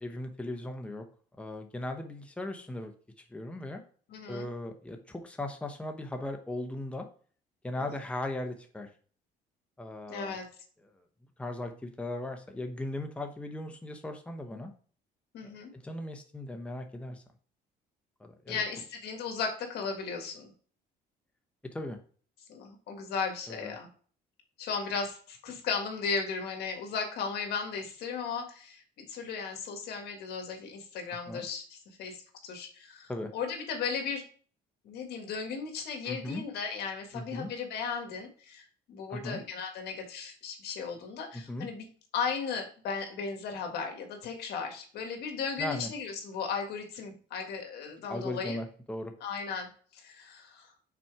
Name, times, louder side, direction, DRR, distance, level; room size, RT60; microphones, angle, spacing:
voice 1, 0.0-1.0 1.4-2.9 3.2-3.8 4.3-7.1 7.6-8.9 9.8-10.4 10.8-11.0 11.4-14.7 15.4-17.2 18.2-18.6 21.7-22.0 23.5-23.7 31.3-31.5 33.1-33.3 36.0-36.4 37.1-37.5 39.1-39.4 41.3-41.7 45.6-45.9 48.1-49.1, left 1 dB, 5° left, 5 dB, 0.9 m, -38 dB
voice 2, 4.1-4.5 7.8-7.9 10.1-10.5 15.3-15.7 18.5-20.5 22.5-23.9 24.6-28.8 29.1-34.2 34.8-41.8 42.1-48.6 49.2-50.7, left 5 dB, 70° left, 4 dB, 1.7 m, -36 dB
6.1 x 4.3 x 4.7 m, 0.43 s
cardioid pair, 110°, 17 cm